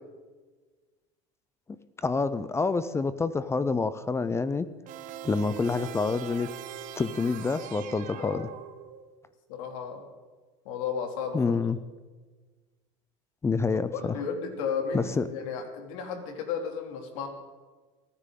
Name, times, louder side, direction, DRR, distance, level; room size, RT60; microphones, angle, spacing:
voice 1, 2.0-4.7 5.2-6.5 7.0-8.5 11.3-11.8 13.4-14.2 14.9-15.3, left 4 dB, 15° left, 14 dB, 0.6 m, -27 dB
sound 1, 4.9-9.2, right 10 dB, 50° right, 1.2 m, -42 dB
voice 2, 8.2-8.5 9.5-10.1 10.6-11.6 13.9-17.3, left 6 dB, 75° left, 3 dB, 2.7 m, -34 dB
29.0 x 9.9 x 3.8 m, 1.4 s
supercardioid pair, 115°, 17 cm